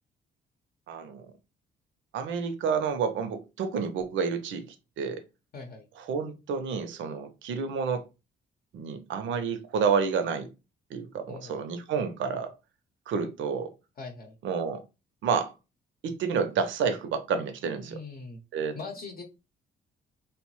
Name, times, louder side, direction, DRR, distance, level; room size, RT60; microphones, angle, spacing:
voice 1, 0.9-1.3 2.1-5.2 6.0-8.1 8.7-10.5 10.9-12.5 13.1-13.7 14.4-14.8 15.2-15.5 16.0-18.0 18.5-18.8, right 6 dB, 70° right, 0.6 m, -29 dB
voice 2, 5.5-5.9 11.3-11.6 14.0-14.4 17.8-18.4 18.7-19.2, left 3 dB, 50° left, 0.7 m, -41 dB
2.8 x 2.0 x 3.0 m
cardioid pair, 90°, 20 cm